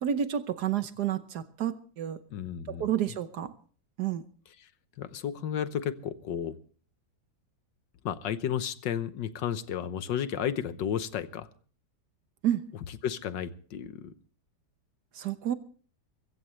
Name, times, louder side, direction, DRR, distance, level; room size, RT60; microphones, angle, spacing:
voice 1, 0.0-2.2 2.7-3.5 4.0-4.2 12.4-12.6 15.2-15.5, right 10 dB, 60° right, 11 dB, 1.4 m, -30 dB
voice 2, 2.3-2.9 4.5-4.7 5.0-6.6 8.0-11.5 12.9-14.1, left 9 dB, 70° left, 13 dB, 1.5 m, -33 dB
23.5 x 15.5 x 3.2 m, 0.42 s
omnidirectional pair, 2.1 m